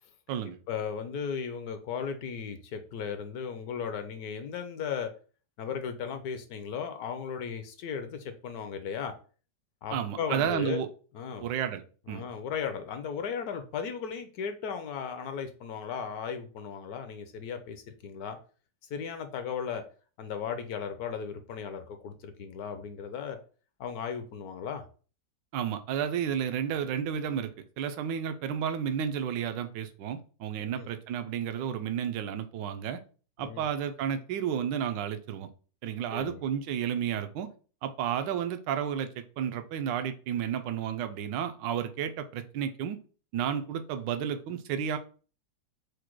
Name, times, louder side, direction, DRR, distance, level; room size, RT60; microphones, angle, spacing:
voice 1, 0.4-5.1 5.6-9.1 9.8-10.8 11.1-11.5 12.1-18.4 18.9-19.8 20.2-23.4 23.8-24.8 30.7-30.9 33.4-33.7 36.1-36.4, left 7 dB, 70° left, 8 dB, 1.0 m, -36 dB
voice 2, 9.9-10.9 11.4-12.2 25.5-33.0 33.4-35.5 35.8-37.5 37.8-43.0 43.3-45.0, right 8 dB, 85° right, 9 dB, 1.3 m, -32 dB
4.9 x 2.1 x 4.4 m, 0.38 s
omnidirectional pair, 1.9 m